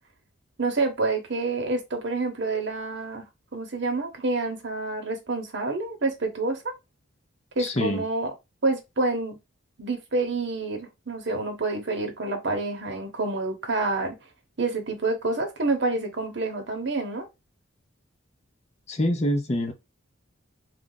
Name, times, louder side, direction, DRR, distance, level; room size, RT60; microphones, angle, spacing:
voice 1, 0.6-3.2 3.5-6.7 7.6-8.3 8.6-9.4 9.8-14.2 14.6-17.3, right 3 dB, 55° right, 1.0 m, -28 dB
voice 2, 7.6-8.0 18.9-19.7, left 1 dB, 30° left, 0.6 m, -25 dB
3.2 x 2.4 x 3.8 m
head